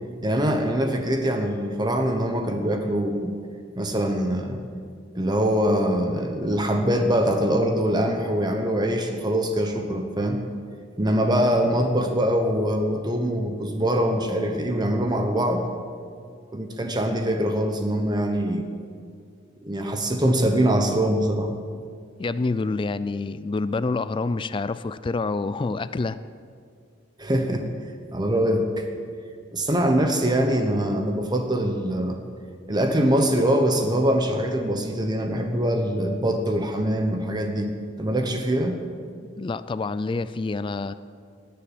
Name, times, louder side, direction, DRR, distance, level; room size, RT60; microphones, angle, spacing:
voice 1, 0.2-3.3 3.8-4.6 5.1-10.4 11.0-15.7 16.5-18.6 19.6-21.5 27.2-27.7 28.1-28.9 29.5-32.2 32.7-37.7 38.0-38.8, equal, 20° right, 4 dB, 1.0 m, -23 dB
voice 2, 22.2-26.2 39.4-40.9, left 3 dB, 25° left, 14 dB, 0.3 m, -27 dB
18.5 x 6.9 x 8.8 m, 2.2 s
head